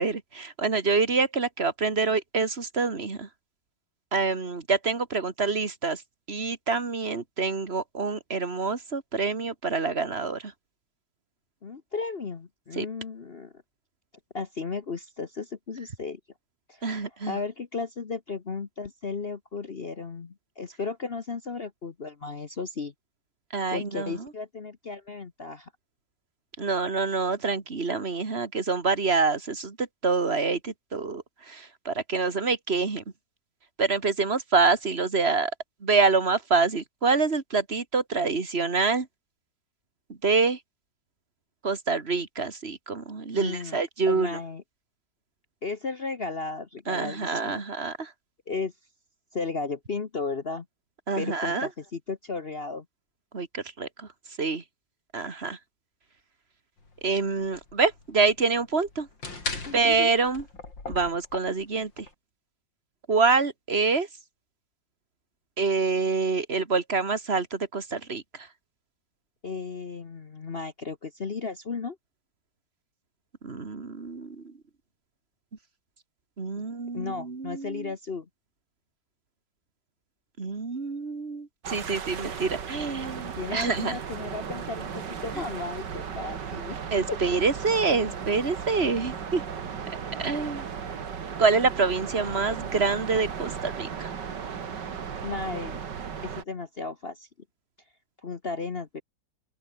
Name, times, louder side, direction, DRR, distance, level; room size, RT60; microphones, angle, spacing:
voice 1, 0.0-3.3 4.1-6.0 6.3-10.5 12.8-12.9 16.8-17.4 23.5-24.2 26.6-33.0 33.8-35.5 35.8-39.1 40.2-40.6 41.6-44.3 46.9-48.1 51.1-51.7 53.3-54.1 54.4-54.6 55.1-55.6 57.0-59.1 59.7-60.4 60.9-62.1 63.1-64.1 65.6-68.2 73.4-74.5 76.4-77.9 80.4-84.0 86.9-89.4 90.2-90.6 91.4-94.1, right 4 dB, 35° right, 2.6 m, -26 dB
voice 2, 11.6-13.5 14.3-16.2 16.7-22.9 23.7-25.7 43.3-44.6 45.6-47.6 48.5-48.7 49.3-50.7 51.1-52.8 59.6-60.1 69.4-72.0 76.9-78.3 83.4-86.8 87.1-87.2 95.2-95.8 96.2-97.3 98.2-99.0, left 4 dB, 35° left, 1.2 m, -35 dB
sound 1, 56.8-62.1, left 3 dB, 85° left, 5.5 m, -39 dB
sound 2, 81.6-96.4, right 7 dB, 70° right, 2.4 m, -36 dB
open air
omnidirectional pair, 2.0 m